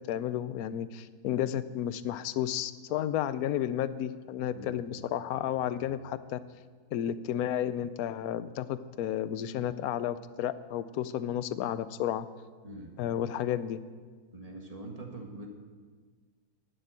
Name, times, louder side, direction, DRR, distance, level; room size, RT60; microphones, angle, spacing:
voice 1, 0.1-6.4 6.9-12.3 13.0-13.8, left 10 dB, 75° left, 14 dB, 1.0 m, -32 dB
voice 2, 12.6-12.9 14.3-15.5, right 2 dB, 25° right, 1 dB, 1.6 m, -44 dB
12.0 x 6.8 x 9.0 m, 1.5 s
omnidirectional pair, 1.7 m